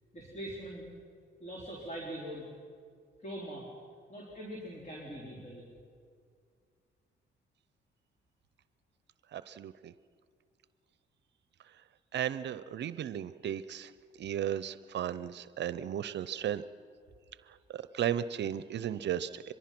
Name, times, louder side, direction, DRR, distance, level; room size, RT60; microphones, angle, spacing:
voice 1, 0.1-0.9 1.4-2.5 3.2-3.7 4.1-5.7, right 1 dB, 35° left, -3 dB, 4.3 m, -42 dB
voice 2, 9.3-9.9 12.1-13.9 14.2-16.6 17.7-19.5, right 10 dB, 60° right, 15 dB, 0.6 m, -35 dB
24.5 x 22.0 x 6.0 m, 2.2 s
cardioid pair, 90°, 20 cm